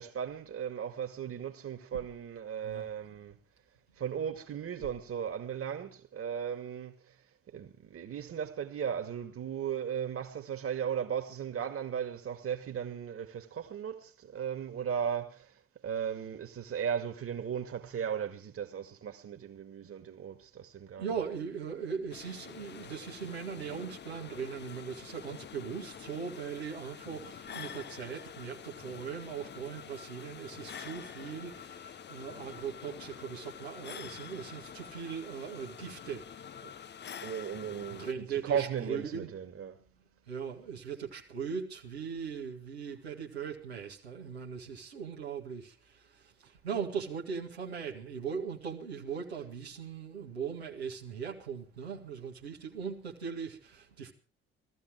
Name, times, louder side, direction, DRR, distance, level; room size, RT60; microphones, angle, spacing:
voice 1, 0.0-3.4 4.0-7.1 7.5-15.5 15.8-21.2 36.6-36.7 37.2-39.8, right 8 dB, 45° right, 2.3 m, -36 dB
voice 2, 21.0-36.2 38.0-39.3 40.3-54.1, right 6 dB, 85° right, 2.2 m, -39 dB
sound 1, 22.1-38.1, left 8 dB, 35° left, 0.7 m, -47 dB
18.0 x 14.5 x 4.7 m
figure-of-eight pair, 45°, 31 cm